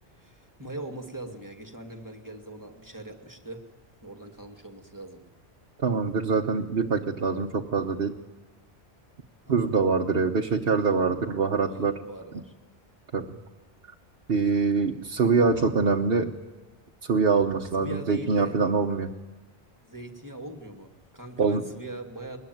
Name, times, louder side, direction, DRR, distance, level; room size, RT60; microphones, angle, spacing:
voice 1, 0.2-3.6 4.0-5.2 9.4-9.8 11.7-12.5 15.2-15.4 17.8-18.5 19.8-22.4, right 1 dB, 15° right, 4 dB, 2.2 m, -41 dB
voice 2, 5.8-8.2 9.5-12.0 13.1-13.4 14.3-16.3 17.0-19.1 21.4-21.6, right 4 dB, 60° right, 1 dB, 1.3 m, -24 dB
22.0 x 20.5 x 9.3 m, 1.2 s
omnidirectional pair, 1.1 m